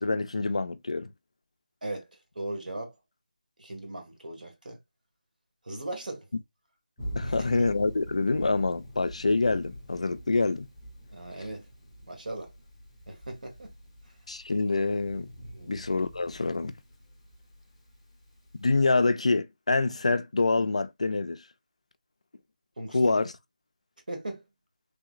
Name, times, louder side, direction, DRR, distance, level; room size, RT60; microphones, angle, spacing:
voice 1, 0.0-1.1 7.2-10.7 14.3-15.3 15.7-16.7 18.6-21.4 22.9-23.3, left 3 dB, 50° left, 0.4 m, -26 dB
voice 2, 2.3-2.9 3.6-4.8 5.6-6.3 7.2-7.6 11.1-11.7 12.1-12.5 13.1-13.7 15.5-15.7 22.8-23.2 24.1-24.4, right 1 dB, 75° right, 1.6 m, -38 dB
Thunder, 7.0-18.9, equal, 5° left, 0.6 m, -44 dB
3.3 x 2.8 x 2.4 m
figure-of-eight pair, 180°, 5 cm